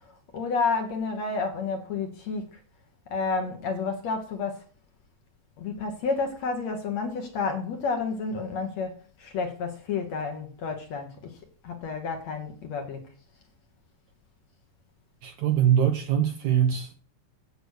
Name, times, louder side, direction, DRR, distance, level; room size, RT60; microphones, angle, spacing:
voice 1, 0.3-2.6 3.1-4.6 5.6-8.9 9.2-11.4 11.6-13.0, left 4 dB, 60° left, 4 dB, 2.0 m, -30 dB
voice 2, 15.2-16.9, right 9 dB, 70° right, 6 dB, 1.8 m, -23 dB
8.4 x 8.0 x 6.4 m, 0.43 s
omnidirectional pair, 4.4 m